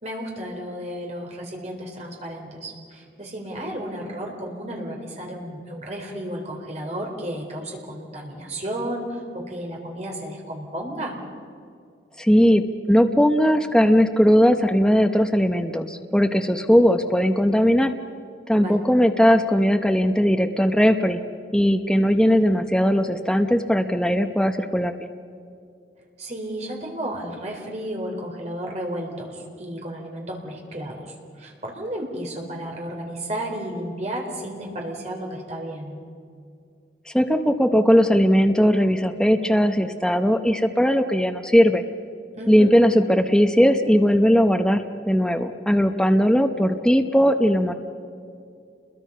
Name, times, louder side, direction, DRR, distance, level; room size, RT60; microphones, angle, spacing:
voice 1, 0.0-11.2 18.5-18.8 26.2-36.0 42.3-42.7, right 1 dB, 40° right, 0 dB, 4.1 m, -33 dB
voice 2, 12.2-17.9 18.5-21.2 21.5-25.0 37.1-41.8 42.5-47.7, equal, 5° left, 6 dB, 0.8 m, -19 dB
29.0 x 22.0 x 5.6 m, 2.4 s
head